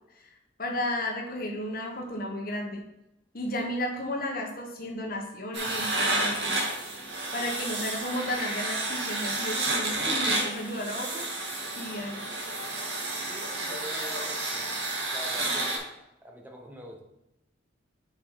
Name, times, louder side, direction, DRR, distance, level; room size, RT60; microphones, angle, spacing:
voice 1, 0.6-2.8 3.3-6.6 7.3-11.2 11.7-12.3, left 1 dB, 50° left, 1 dB, 1.4 m, -33 dB
sound 1, 5.5-15.8, right 2 dB, 60° right, 2.2 m, -31 dB
voice 2, 13.3-14.8 15.1-15.9 16.2-17.0, equal, 10° right, 0 dB, 1.1 m, -44 dB
6.4 x 5.6 x 4.9 m, 0.89 s
head